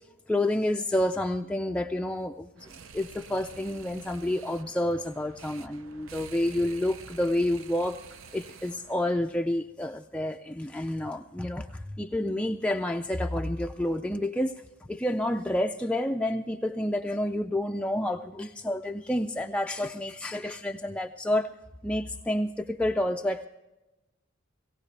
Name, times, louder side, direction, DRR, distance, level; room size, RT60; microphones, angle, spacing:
voice 1, 0.3-8.0 8.3-14.6 14.9-21.5 21.8-23.5, left 1 dB, 5° left, 4 dB, 0.4 m, -29 dB
sound 1, 2.6-9.0, right 5 dB, 75° right, 0.7 m, -49 dB
18.0 x 17.5 x 3.3 m, 1.0 s
head